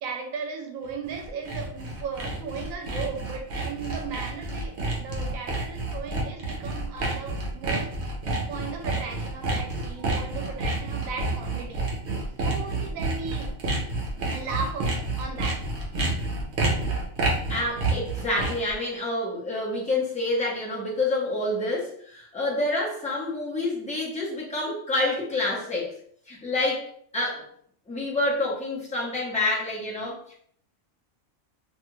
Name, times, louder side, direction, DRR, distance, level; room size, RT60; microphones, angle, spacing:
voice 1, 0.0-7.9 8.5-11.8 12.4-13.5 14.3-15.7, right 5 dB, 90° right, 3 dB, 1.0 m, -36 dB
Sawing, 0.9-18.7, right 2 dB, 60° right, 0.9 m, -29 dB
voice 2, 17.5-26.0 26.3-26.9 27.1-27.5 27.9-30.3, left 2 dB, 10° left, -5 dB, 0.4 m, -28 dB
2.7 x 2.3 x 3.0 m, 0.62 s
omnidirectional pair, 1.4 m